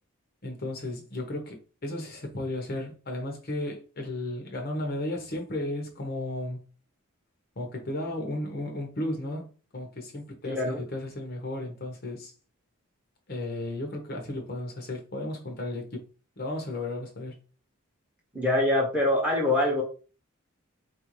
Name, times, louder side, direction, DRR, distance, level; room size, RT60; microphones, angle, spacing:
voice 1, 0.4-6.6 7.6-12.3 13.3-16.0 16.4-17.4, left 1 dB, 45° left, 0.8 m, -34 dB
voice 2, 10.5-10.8 18.3-19.8, left 1 dB, 5° right, 0.9 m, -24 dB
4.2 x 2.6 x 3.0 m
head